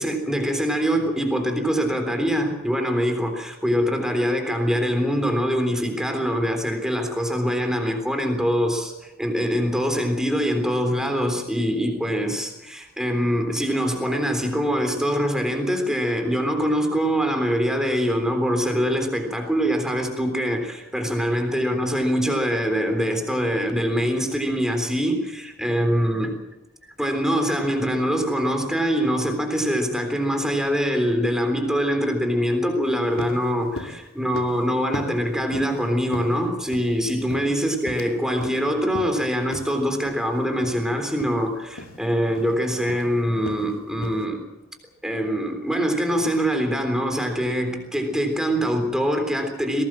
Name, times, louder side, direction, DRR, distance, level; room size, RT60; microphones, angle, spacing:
voice 1, 0.0-26.4 27.0-44.4 45.0-49.8, equal, 5° right, 5 dB, 3.6 m, -24 dB
sound 1, 32.8-32.9 33.2-33.4 33.8-34.0 34.3-34.6 34.9-35.2 35.5-35.8 36.1-36.9 37.3-38.1 38.4-38.6 38.9-39.2 39.5-39.7 40.1-40.2 40.6-40.8 41.1-41.3 41.8-42.0 42.3-42.6 42.9-43.1 43.5-43.7 44.0-44.2, left 1 dB, 85° left, 2.4 m, -36 dB
22.0 x 18.5 x 7.6 m, 0.96 s
head